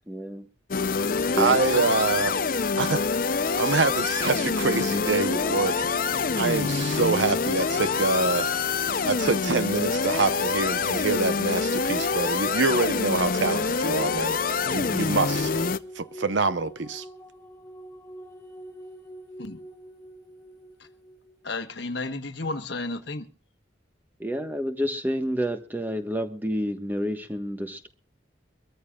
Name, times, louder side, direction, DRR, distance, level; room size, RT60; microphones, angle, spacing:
voice 1, 0.1-0.5 1.1-1.6 24.2-27.9, equal, 10° right, 1.3 m, -29 dB
sound 1, 0.7-15.8, left 4 dB, 45° left, 0.6 m, -26 dB
voice 2, 1.4-2.4 2.8-3.0 3.6-6.0 6.3-8.5 9.0-14.4 14.7-15.5 16.0-17.0, right 3 dB, 75° right, 0.9 m, -25 dB
sound 2, 14.3-21.5, right 1 dB, 15° left, 3.3 m, -45 dB
voice 3, 21.4-23.3, left 3 dB, 65° left, 1.3 m, -32 dB
24.0 x 14.0 x 2.4 m
head